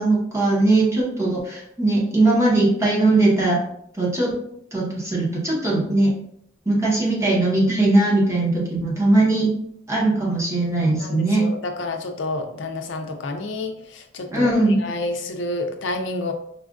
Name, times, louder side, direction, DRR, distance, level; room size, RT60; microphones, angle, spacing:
voice 1, 0.0-3.6 4.0-4.3 4.7-6.1 6.7-9.5 9.9-11.4 14.3-14.8, right 2 dB, 15° right, -4 dB, 0.9 m, -19 dB
voice 2, 10.8-16.3, left 2 dB, 75° left, 6 dB, 0.5 m, -29 dB
4.8 x 2.4 x 2.4 m, 0.70 s
head